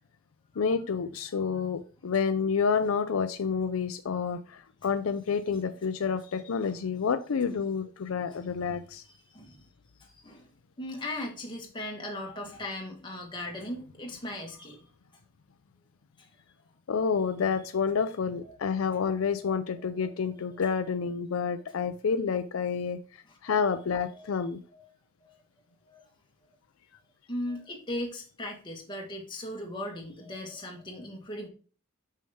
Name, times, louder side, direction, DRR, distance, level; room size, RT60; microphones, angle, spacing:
voice 1, 0.6-9.0 16.9-24.6, left 6 dB, 75° left, 11 dB, 0.5 m, -29 dB
voice 2, 10.0-10.5 10.8-14.8 18.5-18.6 19.4-19.5 20.0-20.1 23.3-23.8 24.1-24.3 24.7-24.8 25.2-25.4 25.8-26.0 27.3-31.5, left 1 dB, 20° left, 1 dB, 1.6 m, -38 dB
6.2 x 5.6 x 3.6 m, 0.37 s
head